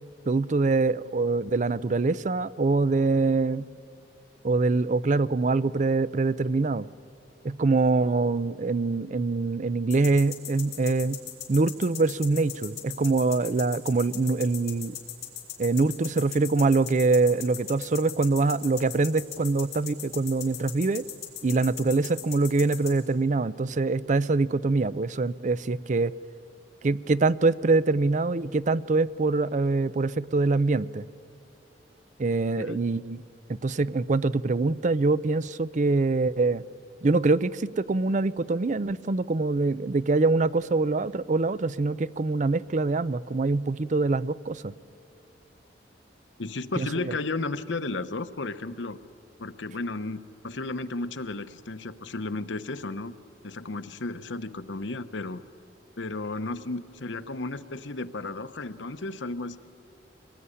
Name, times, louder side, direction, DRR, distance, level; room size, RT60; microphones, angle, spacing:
voice 1, 0.3-3.7 4.4-6.9 7.4-11.2 11.5-15.0 15.6-21.0 21.4-26.1 26.8-31.1 32.2-33.2 33.6-36.6 37.0-44.7 46.8-46.9, right 3 dB, 40° right, 17 dB, 0.5 m, -24 dB
sound 1, 9.9-22.9, left 12 dB, 55° left, 4.3 m, -38 dB
voice 2, 46.4-49.0 49.4-53.1 53.4-55.4 56.0-59.6, left 3 dB, 85° left, 11 dB, 1.0 m, -33 dB
24.0 x 19.5 x 9.8 m, 2.5 s
head